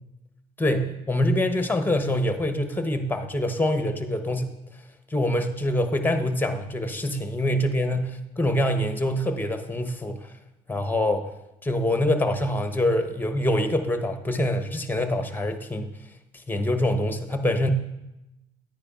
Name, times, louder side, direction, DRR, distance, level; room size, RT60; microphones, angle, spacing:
voice 1, 0.6-4.5 5.1-10.2 10.7-11.3 11.6-15.9 16.5-17.7, left 1 dB, 10° left, 7 dB, 1.0 m, -25 dB
9.7 x 9.4 x 2.5 m, 0.93 s
hypercardioid pair, 60°, 18 cm